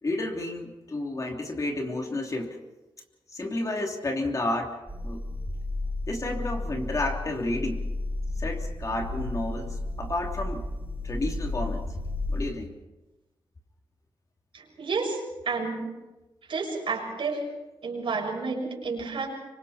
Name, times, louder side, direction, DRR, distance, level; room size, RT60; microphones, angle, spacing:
voice 1, 0.0-2.6 3.3-5.2 6.1-7.9 8.4-10.7 11.0-12.0 12.3-12.7, left 2 dB, 35° left, 2 dB, 3.0 m, -31 dB
sound 1, 4.9-12.5, left 2 dB, 15° right, 5.4 m, -33 dB
voice 2, 14.8-15.2 15.4-15.9 16.5-17.4 17.8-19.3, right 4 dB, 70° right, 0 dB, 6.6 m, -30 dB
26.5 x 24.5 x 4.3 m, 1.1 s
wide cardioid pair, 110°, 9 cm